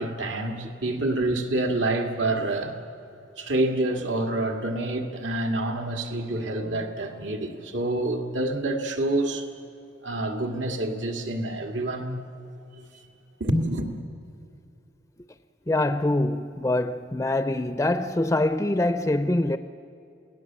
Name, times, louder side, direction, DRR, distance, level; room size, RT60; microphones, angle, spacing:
voice 1, 0.0-2.7 3.4-9.5 10.0-12.3 13.4-13.9, right 1 dB, 80° right, 2.2 m, -27 dB
voice 2, 15.7-19.6, left 1 dB, 15° left, 0.5 m, -24 dB
28.0 x 18.0 x 7.5 m
head